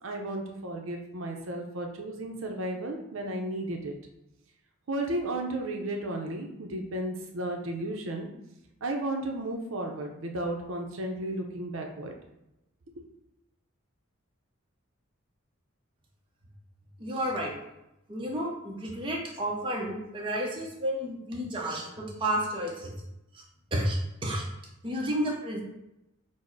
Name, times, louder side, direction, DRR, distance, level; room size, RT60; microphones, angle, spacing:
voice 1, 0.0-3.9 4.9-8.3 8.8-12.1, right 1 dB, 70° right, 2 dB, 0.6 m, -33 dB
voice 2, 17.0-17.6 18.1-22.9 23.3-23.4 23.7-24.5 24.8-25.6, right 1 dB, 25° right, -2 dB, 0.6 m, -31 dB
4.4 x 2.0 x 4.5 m, 0.88 s
head